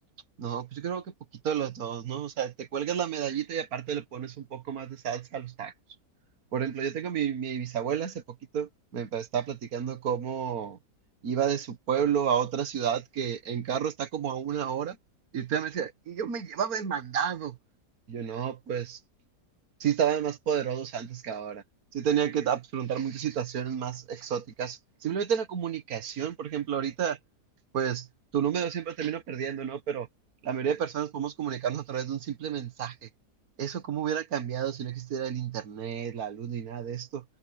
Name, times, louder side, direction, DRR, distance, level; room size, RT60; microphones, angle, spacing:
voice 1, 0.4-1.1 1.4-5.7 6.5-8.2 8.5-10.8 11.2-15.0 15.3-17.6 18.1-19.0 19.8-21.6 21.9-27.2 27.7-28.1 28.3-30.1 30.4-33.1 33.6-37.2, right 8 dB, 60° right, 1.9 m, -31 dB
omnidirectional pair, 1.7 m